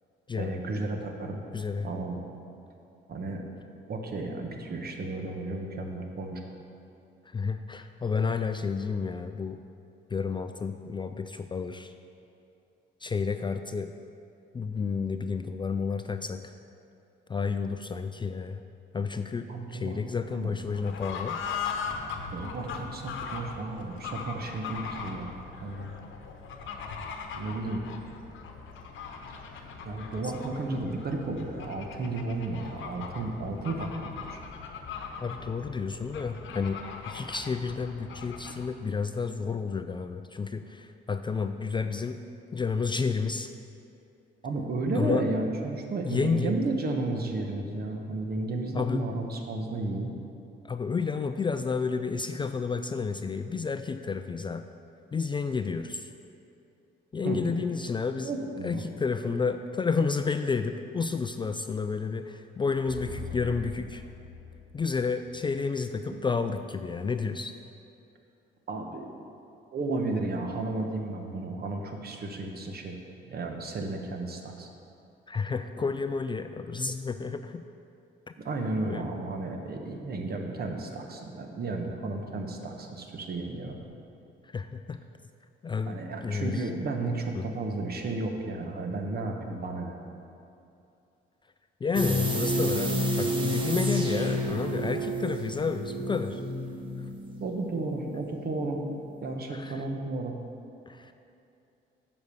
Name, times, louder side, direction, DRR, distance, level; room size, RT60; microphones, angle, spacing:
voice 1, 0.4-1.4 1.8-2.2 3.1-3.4 3.9-6.4 19.5-20.0 20.3-20.5 22.3-26.0 27.3-27.8 29.8-34.4 44.4-50.1 57.2-57.5 58.2-58.8 68.7-69.1 69.7-73.0 73.3-74.7 78.4-83.8 85.9-89.9 97.4-98.8 99.2-100.3, right 2 dB, 50° right, 3 dB, 1.1 m, -33 dB
voice 2, 1.5-1.9 7.3-9.6 10.1-11.9 13.0-13.9 14.5-16.5 17.3-18.6 18.9-21.4 35.2-42.2 42.5-43.5 44.9-45.3 46.0-46.6 48.7-49.0 50.6-54.7 55.1-56.1 57.1-58.3 58.6-64.0 64.7-67.5 75.3-77.6 78.8-79.1 84.4-85.0 85.6-86.7 87.3-87.5 91.8-96.4 99.5-99.8 100.9-101.1, left 5 dB, 25° left, 8 dB, 0.3 m, -31 dB
Fowl / Bird, 20.7-38.7, left 5 dB, 75° left, 0.9 m, -40 dB
sound 1, 62.9-65.5, left 4 dB, 70° right, 2.3 m, -41 dB
sound 2, 91.9-98.7 99.0-99.2, equal, 25° right, 1.3 m, -30 dB
8.0 x 5.3 x 6.8 m, 2.7 s
cardioid pair, 90°, 20 cm